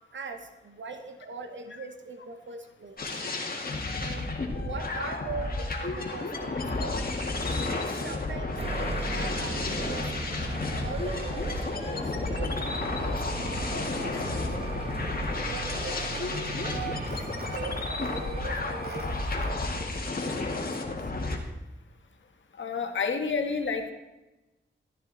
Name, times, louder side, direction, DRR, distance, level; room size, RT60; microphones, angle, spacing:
voice 1, 0.1-3.1 4.0-4.3 4.6-7.2 7.6-10.4 10.7-14.4 15.3-21.0, right 4 dB, 75° right, 7 dB, 1.2 m, -42 dB
sound 1, 3.0-21.4, left 2 dB, 50° left, 2.0 m, -32 dB
sound 2, 8.6-19.2, right 2 dB, 30° right, 1.1 m, -38 dB
sound 3, 12.5-19.5, right 3 dB, 50° right, 3.1 m, -42 dB
voice 2, 22.6-23.9, left 5 dB, 75° left, 4 dB, 1.7 m, -29 dB
14.0 x 12.5 x 4.1 m, 1.0 s
wide cardioid pair, 75°, 20 cm